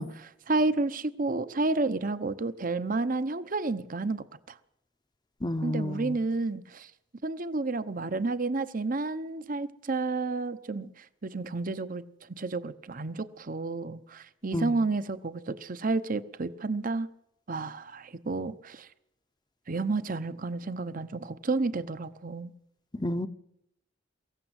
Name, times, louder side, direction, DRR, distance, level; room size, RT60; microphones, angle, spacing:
voice 1, 0.0-4.2 5.6-6.9 7.2-17.1 17.5-18.9 19.7-22.5, right 3 dB, 45° right, 0.9 m, -31 dB
voice 2, 5.4-6.2 14.5-14.7 23.0-23.3, left 1 dB, 25° left, 0.8 m, -30 dB
23.5 x 15.0 x 8.1 m
head